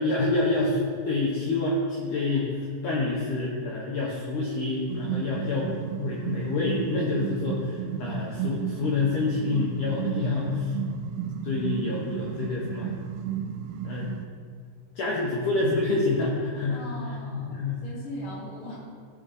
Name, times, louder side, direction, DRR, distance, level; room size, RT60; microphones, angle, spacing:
voice 1, 0.0-5.7 6.0-10.7 11.4-12.9 13.8-14.1 14.9-16.9 17.3-17.8, left 3 dB, 80° left, -3 dB, 1.7 m, -27 dB
sound 1, 4.9-14.3, right 9 dB, 85° right, 2.6 m, -33 dB
voice 2, 16.7-18.8, equal, 55° left, -6 dB, 3.4 m, -40 dB
15.5 x 5.4 x 3.8 m, 2.1 s
omnidirectional pair, 4.9 m